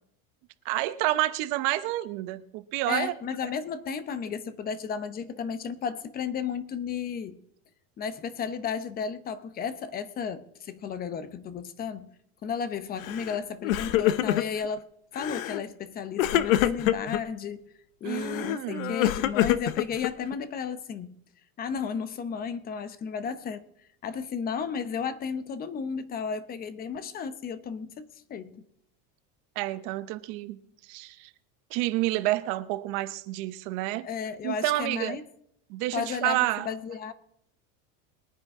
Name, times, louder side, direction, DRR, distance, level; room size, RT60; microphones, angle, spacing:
voice 1, 0.6-3.1 18.0-19.0 29.6-30.6 30.9-31.3 31.7-34.1 34.4-35.2 35.7-36.7, right 17 dB, 50° right, 0.9 m, -29 dB
voice 2, 2.9-7.4 8.0-12.1 12.4-14.9 15.1-17.7 18.0-21.1 21.6-23.7 24.0-28.6 34.0-35.2 35.9-37.1, left 6 dB, 25° left, 0.8 m, -33 dB
Crying sobbing, 13.0-13.4 13.6-14.7 15.2-15.6 16.2-17.2 18.1-20.3, left 13 dB, 85° left, 0.8 m, -26 dB
21.5 x 9.6 x 3.6 m
supercardioid pair, 155°, 39 cm